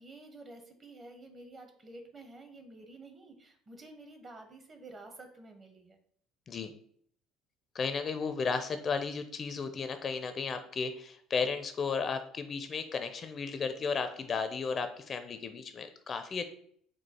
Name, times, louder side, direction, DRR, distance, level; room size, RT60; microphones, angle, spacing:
voice 1, 0.0-6.0, right 2 dB, 35° right, 5 dB, 1.0 m, -50 dB
voice 2, 7.7-16.5, left 5 dB, 40° left, 9 dB, 0.5 m, -34 dB
4.6 x 2.4 x 4.3 m, 0.62 s
supercardioid pair, 85°, 0 cm